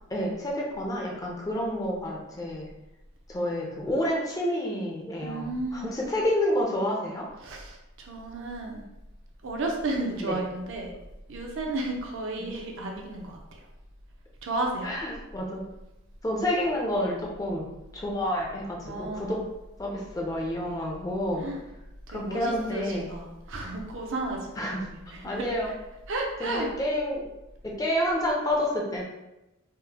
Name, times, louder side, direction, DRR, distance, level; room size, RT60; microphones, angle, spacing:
voice 1, 0.1-2.7 3.3-7.3 10.2-10.4 14.8-15.7 16.2-19.4 19.8-21.5 22.1-23.1 24.6-24.8 25.2-25.7 26.4-27.2 27.6-29.0, left 1 dB, 15° left, -2 dB, 0.4 m, -29 dB
voice 2, 5.2-5.9 7.4-8.8 9.4-10.9 11.3-13.7 14.4-14.9 18.8-19.4 21.4-21.6 22.1-25.7 26.1-26.7, right 2 dB, 60° right, 1 dB, 0.5 m, -33 dB
3.6 x 2.1 x 2.8 m, 0.94 s
head